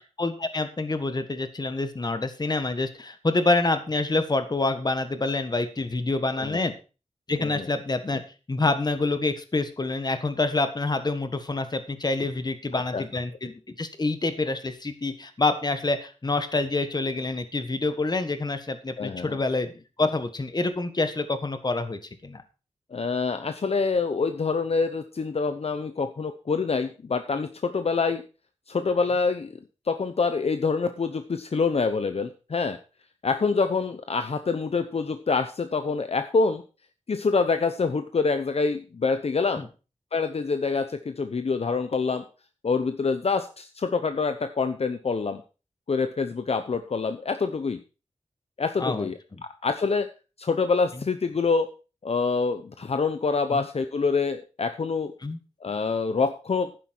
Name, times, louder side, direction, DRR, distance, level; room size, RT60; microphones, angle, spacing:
voice 1, 0.2-6.7 7.3-8.2 8.5-22.4 39.6-39.7 48.8-49.1 53.5-53.6 55.2-55.4, left 2 dB, 35° left, 10 dB, 1.6 m, -27 dB
voice 2, 6.4-6.7 7.4-7.7 12.7-13.0 19.0-19.4 22.9-28.2 28.7-29.5 29.9-32.8 33.2-36.6 37.1-39.6 40.1-42.2 42.6-45.4 45.9-47.8 48.6-49.2 49.6-50.1 50.4-51.7 52.0-55.1 55.6-56.7, left 4 dB, 55° left, 9 dB, 0.9 m, -26 dB
11.5 x 10.0 x 4.5 m, 0.33 s
wide cardioid pair, 115°, 12 cm